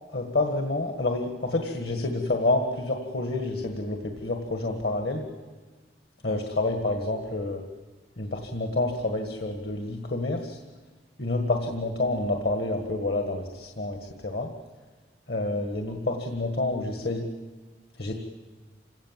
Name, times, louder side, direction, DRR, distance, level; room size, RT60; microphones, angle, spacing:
voice 1, 0.1-5.3 6.2-7.6 8.2-10.6 11.2-14.5 15.3-17.3 18.0-18.1, left 2 dB, 60° left, 4 dB, 1.8 m, -28 dB
27.5 x 17.5 x 7.5 m, 1.4 s
head